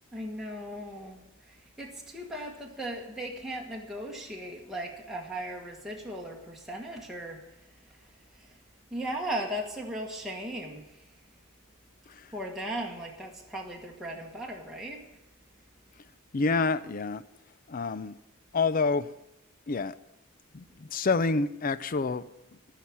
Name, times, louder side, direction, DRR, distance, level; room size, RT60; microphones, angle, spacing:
voice 1, 0.1-1.2 1.5-7.4 8.3-8.5 8.9-11.1 12.3-15.0, right 1 dB, ahead, 1.4 m, -37 dB
voice 2, 16.3-17.2 17.7-18.1 18.5-19.1 19.7-19.9 20.5-22.2, left 4 dB, 40° left, 0.5 m, -27 dB
14.5 x 5.8 x 9.7 m
head